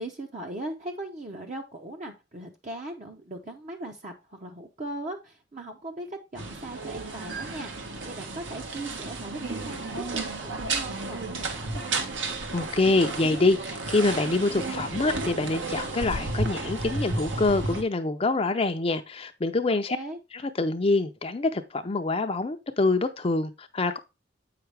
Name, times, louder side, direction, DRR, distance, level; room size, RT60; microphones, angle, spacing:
voice 1, 0.0-12.1 19.9-20.2, right 1 dB, 40° right, 0.8 m, -39 dB
sound 1, 6.4-17.8, right 3 dB, 80° right, 1.5 m, -32 dB
voice 2, 12.5-20.0 20.6-24.0, left 3 dB, 30° left, 0.5 m, -25 dB
8.0 x 5.8 x 3.3 m
head